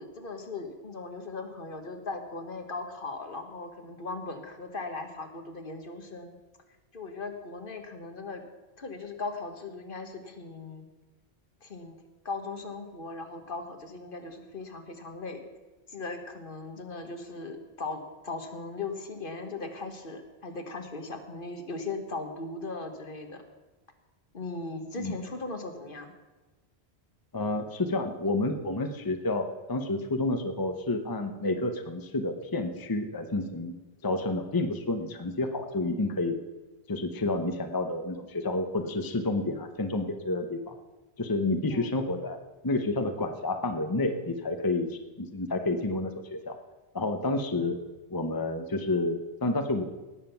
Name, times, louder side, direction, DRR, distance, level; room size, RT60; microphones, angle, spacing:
voice 1, 0.0-6.4 6.9-8.4 8.8-10.9 11.6-12.0 12.2-15.4 15.9-23.4 24.3-26.1 41.7-41.9, left 3 dB, 55° left, 6 dB, 1.5 m, -38 dB
voice 2, 27.3-33.7 34.0-36.4 36.9-40.8 41.2-42.4 42.6-46.6 46.9-47.8 48.1-49.8, left 2 dB, 20° left, 6 dB, 0.8 m, -30 dB
18.0 x 7.4 x 5.8 m, 1.2 s
omnidirectional pair, 1.1 m